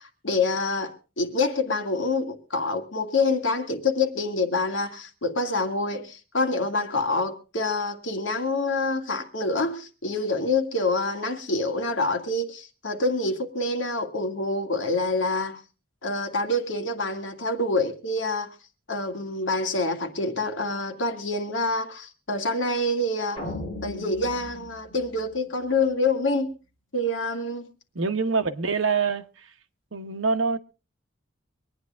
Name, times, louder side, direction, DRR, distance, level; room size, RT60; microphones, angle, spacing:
voice 1, 0.0-15.6 16.0-18.5 18.9-23.4 23.8-26.5 26.9-27.7, left 2 dB, 75° left, 2.2 m, -26 dB
sound 1, 23.4-25.8, left 1 dB, 30° left, 6.1 m, -38 dB
voice 2, 27.9-29.5 29.9-30.6, right 4 dB, 85° right, 1.1 m, -25 dB
24.5 x 9.7 x 3.5 m
head